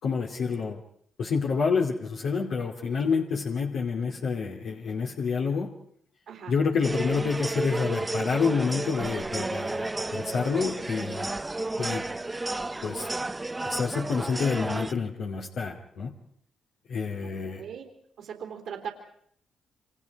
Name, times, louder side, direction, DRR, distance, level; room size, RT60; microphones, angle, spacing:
voice 1, 0.0-0.8 1.2-5.7 6.5-11.3 11.8-12.0 12.8-13.1 13.6-16.1 16.9-17.6, left 5 dB, 70° left, -2 dB, 2.7 m, -28 dB
sound 1, 6.8-14.9, right 2 dB, 25° right, 0.9 m, -32 dB
voice 2, 17.2-17.9 18.2-18.9, right 8 dB, 75° right, 1 dB, 3.6 m, -39 dB
28.0 x 26.5 x 4.8 m, 0.65 s
supercardioid pair, 50°, 0 cm